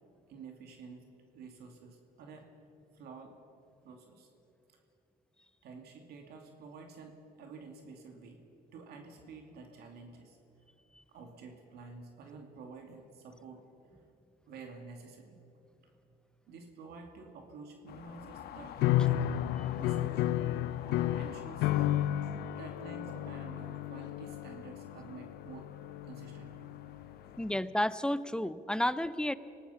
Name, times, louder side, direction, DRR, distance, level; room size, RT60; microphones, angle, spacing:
voice 1, 0.3-2.5 2.9-3.4 3.8-4.3 4.7-4.8 5.6-8.4 8.7-10.4 11.1-13.7 14.4-15.4 16.5-19.3 19.8-20.4 20.8-22.0 22.5-25.7 26.0-26.7 27.2-27.4, right 4 dB, 70° right, 3 dB, 2.6 m, -50 dB
sound 1, 17.9-27.6, left 9 dB, 70° left, 1.3 m, -49 dB
sound 2, 18.8-27.1, left 13 dB, 90° left, 0.7 m, -32 dB
voice 2, 27.4-29.3, left 1 dB, 5° left, 14 dB, 0.6 m, -31 dB
27.0 x 18.5 x 5.7 m, 3.0 s
cardioid pair, 110°, 17 cm